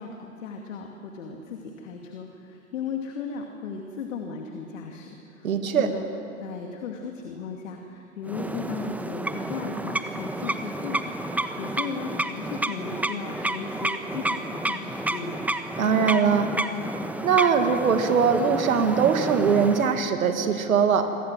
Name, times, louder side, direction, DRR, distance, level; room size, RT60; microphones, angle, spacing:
voice 1, 0.0-5.1 5.4-6.1 6.4-15.4, left 5 dB, 60° left, 3 dB, 2.6 m, -36 dB
voice 2, 5.4-5.9 15.8-16.5 17.2-21.1, right 6 dB, 75° right, 7 dB, 2.2 m, -21 dB
sound 1, 8.3-20.1, right 1 dB, 5° right, 1.2 m, -31 dB
27.5 x 24.0 x 7.7 m, 2.8 s
figure-of-eight pair, 100°, 42 cm